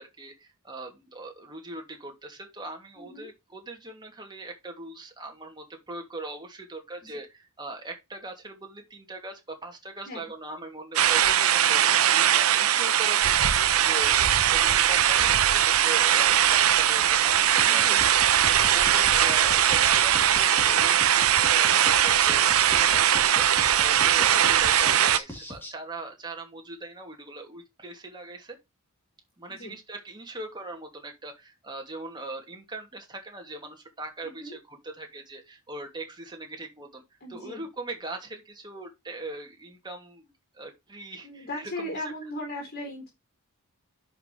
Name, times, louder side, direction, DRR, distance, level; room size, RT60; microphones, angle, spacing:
voice 1, 0.0-18.0 18.6-28.6 29.4-37.0 37.3-42.0, right 2 dB, 20° right, 2.7 m, -40 dB
voice 2, 3.0-3.3 7.0-7.2 10.0-10.3 17.6-18.0 24.2-24.5 29.4-29.8 34.2-34.6 37.2-37.6 41.2-43.1, left 1 dB, 45° left, 4.0 m, -38 dB
sound 1, 11.0-25.2, right 10 dB, 75° right, 0.8 m, -21 dB
sound 2, 17.6-25.7, left 1 dB, 10° left, 3.3 m, -40 dB
10.5 x 5.9 x 3.3 m
head